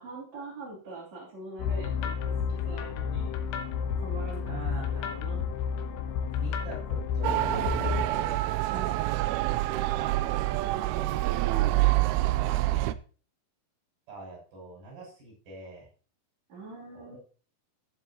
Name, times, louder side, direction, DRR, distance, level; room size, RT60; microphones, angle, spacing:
voice 1, 0.0-2.2 2.5-3.3 4.0-5.4 8.7-9.0 16.5-17.2, right 3 dB, 45° right, -6 dB, 3.9 m, -43 dB
sound 1, 1.6-8.0, left 6 dB, 90° left, 3.1 m, -31 dB
voice 2, 4.4-5.1 6.3-8.4 11.5-13.0 14.1-15.9 16.9-17.2, right 3 dB, 65° right, -3 dB, 8.2 m, -44 dB
Motor vehicle (road) / Siren, 7.2-12.9, right 16 dB, 85° right, 2.4 m, -26 dB
15.5 x 7.4 x 2.9 m, 0.39 s
omnidirectional pair, 4.6 m